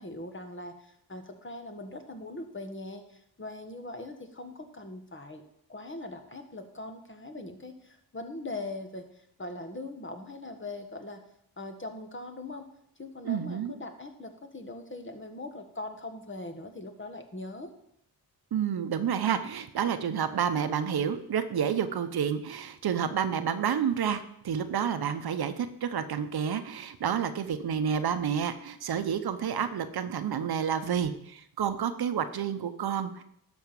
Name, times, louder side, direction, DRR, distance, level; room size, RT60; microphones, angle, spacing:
voice 1, 0.0-5.4 5.7-11.2 11.6-12.6 13.0-17.7, left 2 dB, 30° left, 6 dB, 1.6 m, -41 dB
voice 2, 13.2-13.7 18.5-33.2, right 8 dB, 75° right, 10 dB, 0.9 m, -29 dB
12.0 x 4.4 x 7.4 m, 0.73 s
cardioid pair, 60°, 38 cm